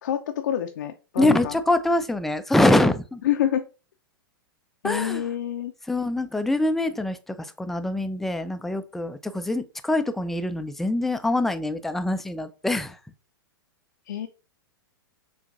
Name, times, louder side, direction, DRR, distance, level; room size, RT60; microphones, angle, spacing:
voice 1, 0.0-1.6 3.2-3.7 4.8-5.7 14.1-14.3, left 10 dB, 60° left, 0.5 m, -27 dB
voice 2, 1.2-3.2 4.8-5.3 5.9-13.0, left 1 dB, ahead, 0.3 m, -24 dB
7.0 x 2.5 x 2.5 m
figure-of-eight pair, 100°, 12 cm